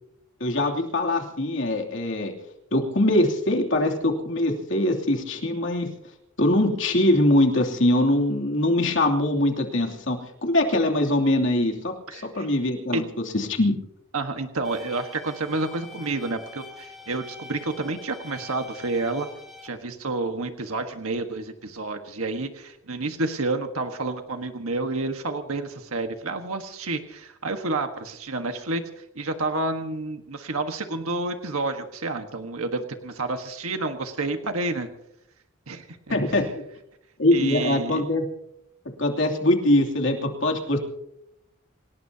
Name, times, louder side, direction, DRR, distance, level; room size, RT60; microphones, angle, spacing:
voice 1, 0.4-2.3 2.7-5.9 6.4-13.0 13.3-13.8 36.1-36.4 37.2-38.2 39.0-40.8, left 1 dB, 60° left, 1 dB, 2.9 m, -22 dB
voice 2, 12.1-12.5 12.9-13.0 14.1-19.3 19.6-34.9 35.7-36.4 37.3-38.1, right 2 dB, 90° right, 5 dB, 1.5 m, -29 dB
sound 1, 14.6-19.7, left 3 dB, ahead, 3.2 m, -45 dB
27.5 x 18.0 x 2.9 m, 0.80 s
head